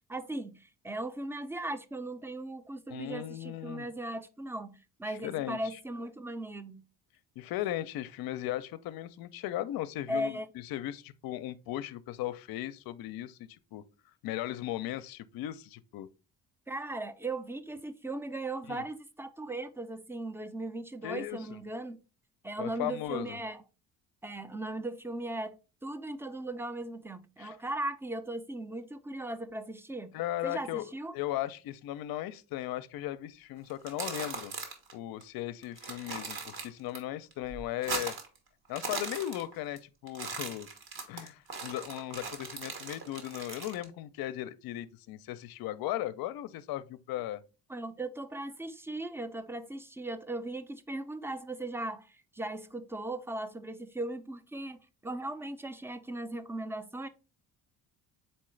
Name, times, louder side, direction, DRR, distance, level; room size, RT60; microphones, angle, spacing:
voice 1, 0.1-6.8 10.1-10.5 16.7-22.0 22.4-23.6 24.2-30.1 30.4-31.1 47.7-57.1, right 2 dB, 5° right, 0.4 m, -38 dB
voice 2, 2.9-3.9 5.0-5.8 7.4-13.8 14.2-16.1 18.7-18.8 21.0-21.6 22.6-23.4 27.4-27.6 30.1-30.9 31.1-34.5 34.9-38.1 38.7-40.7 41.1-47.4, left 13 dB, 65° left, 0.5 m, -37 dB
sound 1, 33.7-34.9 35.2-35.3 35.6-37.0 37.3-38.4 38.6-39.8 40.1-43.8, right 4 dB, 65° right, 1.3 m, -39 dB
4.3 x 3.7 x 3.1 m
supercardioid pair, 70°, 39 cm